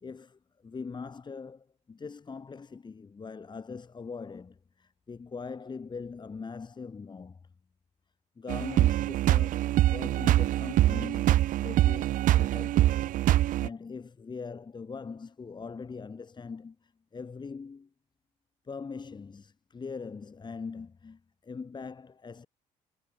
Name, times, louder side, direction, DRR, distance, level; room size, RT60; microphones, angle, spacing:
voice 1, 0.0-7.4 8.4-12.9 13.3-17.9 18.6-22.5, left 5 dB, 30° left, 2.8 m, -42 dB
sound 1, 8.5-13.7, right 14 dB, 70° right, 1.0 m, -24 dB
supercardioid pair, 80°, 14 cm